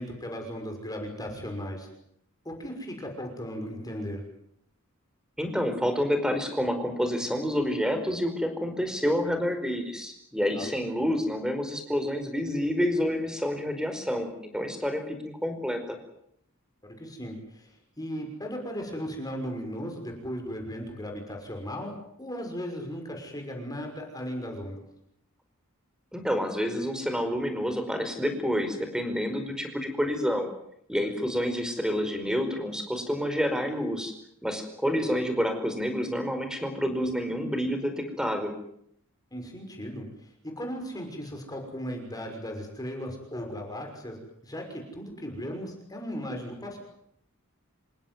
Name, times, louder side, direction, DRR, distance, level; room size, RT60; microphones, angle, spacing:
voice 1, 0.0-1.9 2.4-4.2 10.5-10.7 16.8-24.8 39.3-46.8, equal, 20° left, 2 dB, 6.0 m, -37 dB
voice 2, 5.4-16.0 26.1-30.5 30.9-34.1 34.4-38.5, equal, 5° right, 7 dB, 4.9 m, -28 dB
28.5 x 16.5 x 9.4 m, 0.73 s
head